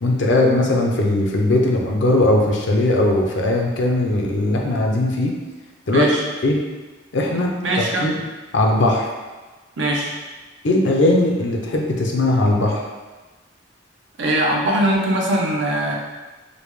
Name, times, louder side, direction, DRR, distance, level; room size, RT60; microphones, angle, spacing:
voice 1, 0.0-5.3 5.9-6.1 6.4-6.6 7.1-8.1 8.5-9.1 10.6-12.8, left 1 dB, 65° left, 0 dB, 0.5 m, -19 dB
voice 2, 5.9-6.2 7.6-8.1 9.8-10.1 14.2-16.0, right 1 dB, 65° right, -1 dB, 0.7 m, -21 dB
5.1 x 2.2 x 3.1 m, 1.2 s
head